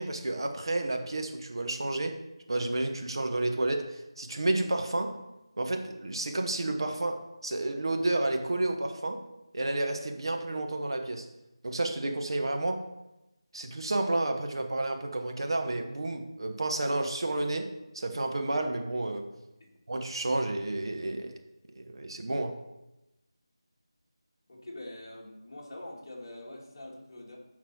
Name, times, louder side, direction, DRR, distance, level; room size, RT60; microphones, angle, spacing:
voice 1, 0.0-2.2 2.5-5.2 5.6-9.2 9.5-11.3 11.6-12.8 13.5-19.3 19.9-21.3 21.7-22.6, right 2 dB, 60° right, 5 dB, 1.1 m, -31 dB
voice 2, 24.5-27.5, left 1 dB, 40° left, -3 dB, 2.0 m, -44 dB
11.5 x 4.1 x 4.6 m, 0.95 s
figure-of-eight pair, 170°, 3 cm